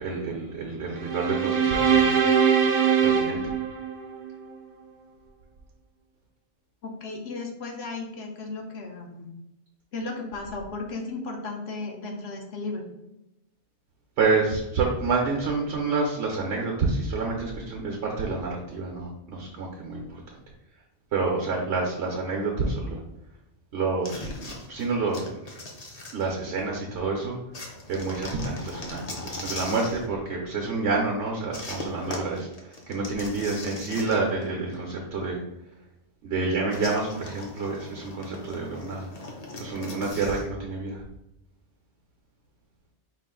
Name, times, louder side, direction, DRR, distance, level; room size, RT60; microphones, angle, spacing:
voice 1, 0.0-2.2 3.0-3.5 14.2-20.1 21.1-23.0 23.7-25.6 26.1-27.4 27.9-32.5 32.9-35.4 36.2-39.1 39.6-41.0, right 3 dB, 70° right, -1 dB, 1.0 m, -28 dB
sound 1, 1.0-4.4, right 7 dB, 50° right, 0.5 m, -22 dB
voice 2, 6.8-9.3 9.9-12.9, left 3 dB, 65° left, 1 dB, 1.0 m, -35 dB
sound 2, 24.0-26.7 27.5-30.1 31.5-34.5 34.7-34.8 36.7-40.5, left 2 dB, 40° left, 0.7 m, -40 dB
4.7 x 2.4 x 3.7 m, 0.90 s
omnidirectional pair, 1.2 m